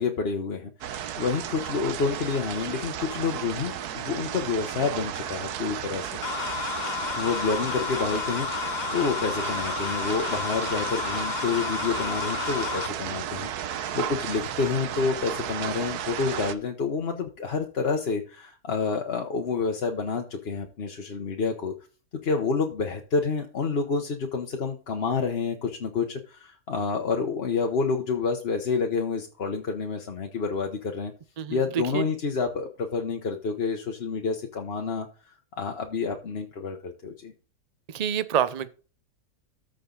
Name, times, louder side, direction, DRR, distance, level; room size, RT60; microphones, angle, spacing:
voice 1, 0.0-6.2 7.2-21.7 22.2-31.1 31.5-37.3, left 5 dB, 45° left, 1.1 m, -29 dB
sound 1, 0.8-16.5, right 9 dB, 75° right, 1.3 m, -34 dB
sound 2, 6.2-12.9, left 7 dB, 75° left, 0.4 m, -31 dB
voice 2, 31.4-32.0 37.9-38.7, right 9 dB, 55° right, 0.4 m, -27 dB
14.0 x 5.1 x 3.9 m
omnidirectional pair, 1.7 m